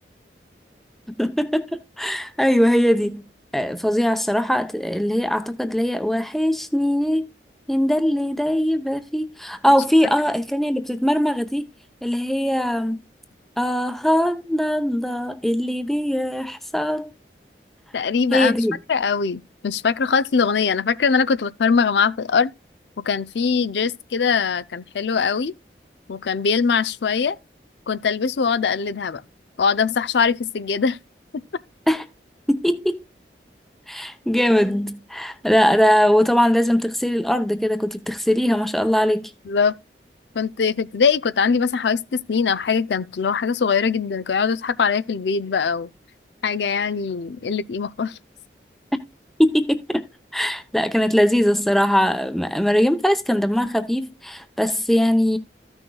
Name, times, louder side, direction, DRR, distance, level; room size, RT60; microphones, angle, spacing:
voice 1, 1.1-3.2 3.5-7.3 7.7-11.7 12.0-13.0 13.6-17.1 18.3-18.7 31.9-32.0 32.5-33.0 33.9-39.3 48.9-49.0 49.4-50.0 50.3-55.4, equal, ahead, 0.7 m, -21 dB
voice 2, 17.9-18.5 18.9-22.5 23.0-25.5 26.1-27.4 27.9-29.2 29.6-31.0 39.5-39.7 40.3-45.9 46.4-48.2, left 5 dB, 80° left, 0.5 m, -22 dB
14.5 x 6.2 x 2.3 m
head